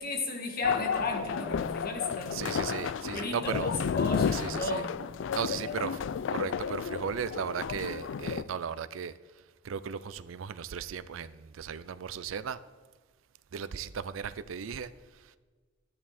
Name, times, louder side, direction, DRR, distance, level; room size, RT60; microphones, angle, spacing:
voice 1, 0.0-2.5 3.1-5.0 5.5-6.0, left 2 dB, 50° left, 2 dB, 1.9 m, -35 dB
sound 1, 0.6-8.4, left 7 dB, 65° left, 0.3 m, -32 dB
voice 2, 2.3-3.7 4.3-4.8 5.3-6.0 6.3-9.1 9.6-12.6 13.5-14.9, right 7 dB, 85° right, 15 dB, 0.4 m, -36 dB
11.0 x 9.8 x 4.2 m, 1.4 s
head